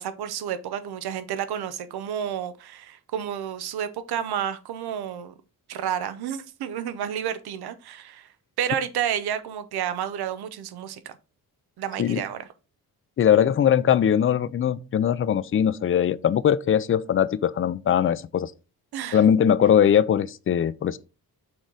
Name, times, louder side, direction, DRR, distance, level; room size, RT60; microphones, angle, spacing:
voice 1, 0.0-5.3 5.7-8.3 8.6-11.2 11.8-12.5 18.9-19.2, right 9 dB, 90° right, 0.8 m, -30 dB
voice 2, 13.2-18.5 19.1-21.0, left 9 dB, 35° left, 0.4 m, -21 dB
6.4 x 4.7 x 3.8 m
cardioid pair, 115°, 37 cm